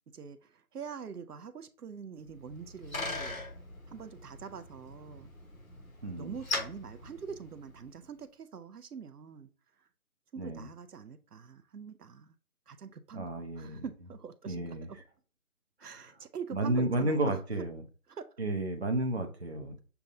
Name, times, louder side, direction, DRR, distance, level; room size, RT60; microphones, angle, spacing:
voice 1, 0.1-3.4 3.9-5.3 6.2-9.5 9.8-9.9 10.3-12.3 12.7-15.0 15.8-17.4 18.1-18.2, right 6 dB, 85° right, 0.6 m, -44 dB
Bicycle, 2.3-8.0, left 3 dB, 60° left, 1.4 m, -41 dB
voice 2, 6.0-6.4 10.4-10.7 13.1-13.8 14.5-14.9 15.8-16.0 16.5-17.8 18.4-19.8, right 1 dB, 45° right, 0.6 m, -32 dB
6.8 x 2.3 x 2.6 m
figure-of-eight pair, 170°, 46 cm